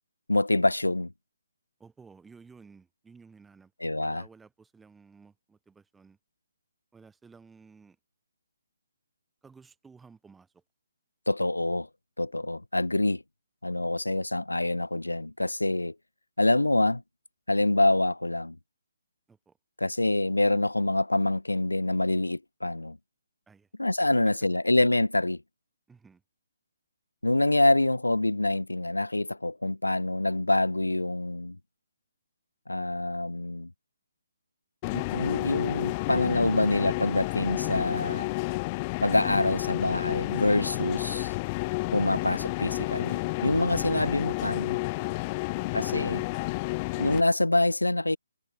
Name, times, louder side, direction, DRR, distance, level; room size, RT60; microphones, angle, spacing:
voice 1, 0.3-1.1 3.8-4.2 11.3-11.9 12.2-13.2 13.6-15.9 16.4-17.0 17.5-18.5 19.8-23.0 23.8-25.4 27.2-31.6 32.7-33.7 34.9-38.3 39.0-41.3 41.9-44.8 45.7-46.2 47.0-48.2, left 2 dB, 85° left, 1.0 m, -26 dB
voice 2, 1.8-6.2 6.9-8.0 9.4-10.6 19.3-19.6 23.5-23.7 24.0-24.4 25.9-26.2 45.1-46.1, right 5 dB, 5° right, 6.1 m, -55 dB
sound 1, 34.8-47.2, left 25 dB, 25° left, 2.2 m, -31 dB
figure-of-eight pair, 140°, 0 cm